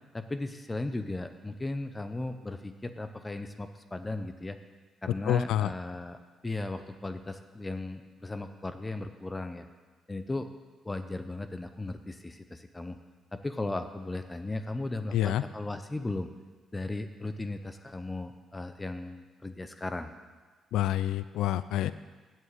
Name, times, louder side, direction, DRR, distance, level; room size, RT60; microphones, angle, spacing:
voice 1, 0.1-4.6 5.0-6.2 6.4-9.7 10.1-10.5 10.8-13.0 13.3-16.3 16.7-20.1, left 2 dB, 15° left, 9 dB, 0.7 m, -36 dB
voice 2, 5.2-5.7 15.1-15.4 20.7-21.9, left 12 dB, 85° left, 15 dB, 0.3 m, -27 dB
8.0 x 7.5 x 8.1 m, 1.3 s
cardioid pair, 90°, 0 cm